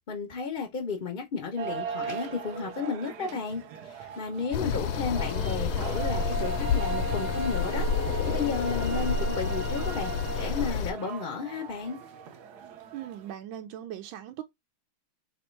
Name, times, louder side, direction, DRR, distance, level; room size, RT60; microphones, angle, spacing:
voice 1, 0.1-7.9 8.2-10.1 10.4-12.0, left 5 dB, 50° left, 0.6 m, -33 dB
sound 1, 1.6-13.3, right 5 dB, 65° right, 1.1 m, -38 dB
sound 2, 4.5-10.9, left 5 dB, 85° left, 1.4 m, -29 dB
voice 2, 12.9-14.4, right 11 dB, 80° right, 1.3 m, -39 dB
3.5 x 3.1 x 4.4 m
omnidirectional pair, 2.1 m